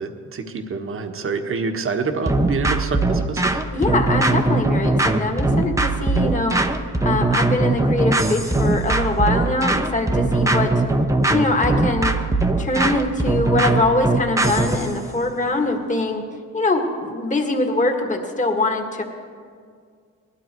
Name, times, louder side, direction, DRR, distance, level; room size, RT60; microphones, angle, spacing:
voice 1, 0.0-3.5, right 4 dB, 45° right, 5 dB, 1.4 m, -27 dB
sound 1, 2.3-14.9, right 2 dB, 10° right, 0.9 m, -20 dB
voice 2, 3.7-6.6 7.0-10.8 11.3-12.2 12.6-16.2 16.5-19.0, left 2 dB, 25° left, 2 dB, 1.9 m, -23 dB
19.5 x 12.5 x 4.6 m, 2.1 s
cardioid pair, 90°, 30 cm